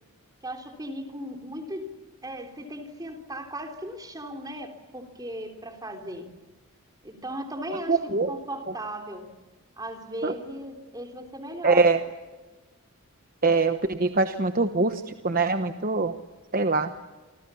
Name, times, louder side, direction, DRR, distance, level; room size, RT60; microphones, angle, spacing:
voice 1, 0.4-1.9 2.2-6.3 7.0-8.0 8.3-9.2 9.8-11.8, right 1 dB, 15° right, 4 dB, 3.5 m, -37 dB
voice 2, 7.9-8.3 10.2-10.3 11.6-12.0 13.4-16.1 16.5-16.9, right 3 dB, 40° right, 7 dB, 1.1 m, -23 dB
29.0 x 25.5 x 7.1 m, 1.2 s
head